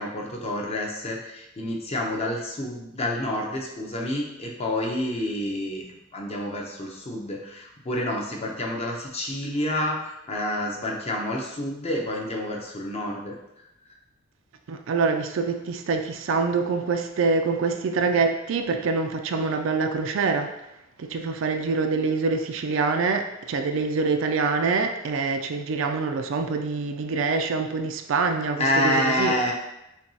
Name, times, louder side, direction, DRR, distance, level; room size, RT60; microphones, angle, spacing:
voice 1, 0.0-13.3 28.6-29.5, left 1 dB, 30° left, -1 dB, 0.6 m, -28 dB
voice 2, 14.7-20.5 21.0-29.3, right 4 dB, 65° right, 6 dB, 0.4 m, -25 dB
5.8 x 2.3 x 2.7 m, 0.89 s
head